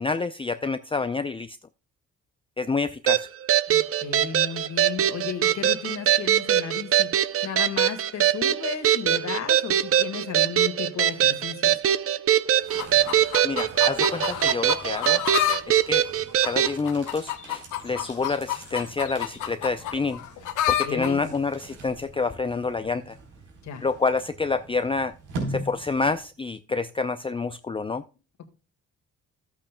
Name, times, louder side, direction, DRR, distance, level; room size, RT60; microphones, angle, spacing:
voice 1, 0.0-1.6 2.6-3.3 13.4-15.2 15.7-16.1 16.5-20.2 20.7-23.2 23.8-25.1 25.5-28.0, left 4 dB, 20° left, 0.5 m, -28 dB
sound 1, 3.1-16.7, right 11 dB, 50° right, 0.6 m, -22 dB
voice 2, 3.7-7.1 7.4-11.8 20.8-21.3 23.6-23.9, left 8 dB, 65° left, 2.0 m, -34 dB
sound 2, 12.4-26.4, right 2 dB, 80° right, 3.9 m, -42 dB
sound 3, 12.7-15.6 15.9-21.1 21.9-22.0, left 11 dB, 85° left, 1.2 m, -29 dB
13.0 x 8.7 x 2.2 m
cardioid pair, 90°, 30 cm